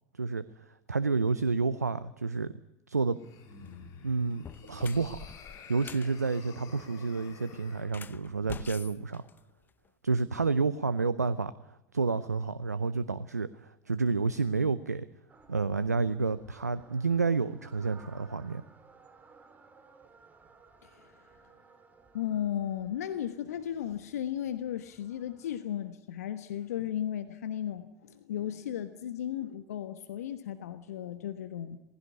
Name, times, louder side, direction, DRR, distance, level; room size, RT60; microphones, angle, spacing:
voice 1, 0.1-2.5 2.9-3.2 4.0-5.2 5.7-9.2 10.0-15.1 15.5-18.6, right 4 dB, 90° right, 15 dB, 0.7 m, -30 dB
sound 1, 3.1-7.9, left 5 dB, 40° left, 3.9 m, -50 dB
sound 2, 3.5-3.8 4.3-6.1 7.8-9.9, left 6 dB, 20° left, 0.8 m, -47 dB
sound 3, 15.3-25.6, right 4 dB, 20° right, 3.1 m, -59 dB
voice 2, 22.1-31.8, left 10 dB, 70° left, 11 dB, 1.2 m, -35 dB
19.5 x 16.0 x 9.7 m, 0.95 s
figure-of-eight pair, 85°, 9 cm